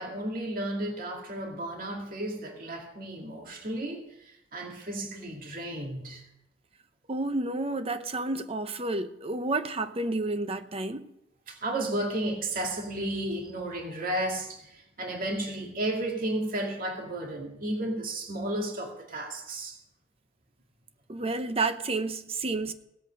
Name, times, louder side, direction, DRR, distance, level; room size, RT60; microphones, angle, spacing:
voice 1, 0.0-6.2 11.5-19.8, right 1 dB, 50° right, 2.3 m, -33 dB
voice 2, 7.1-11.1 21.1-22.7, right 2 dB, 35° right, 0.8 m, -30 dB
17.5 x 8.1 x 5.3 m
head